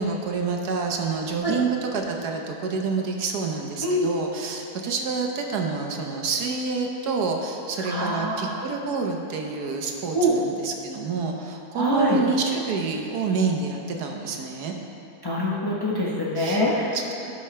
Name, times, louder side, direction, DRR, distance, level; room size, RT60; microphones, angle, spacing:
voice 1, 0.0-14.7 16.4-16.6 16.9-17.3, right 4 dB, 75° right, 2 dB, 1.4 m, -28 dB
voice 2, 7.8-8.5 10.1-10.3 11.7-12.2 15.2-17.0, equal, 20° left, -5 dB, 0.8 m, -24 dB
16.0 x 5.7 x 3.3 m, 2.8 s
omnidirectional pair, 1.7 m